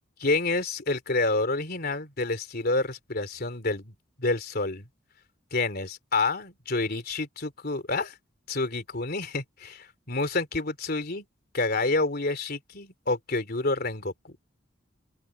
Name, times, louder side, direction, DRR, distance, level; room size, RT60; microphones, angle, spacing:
voice 1, 0.2-4.9 5.5-8.2 8.5-11.3 11.5-14.4, left 3 dB, 50° left, 3.5 m, -28 dB
open air
head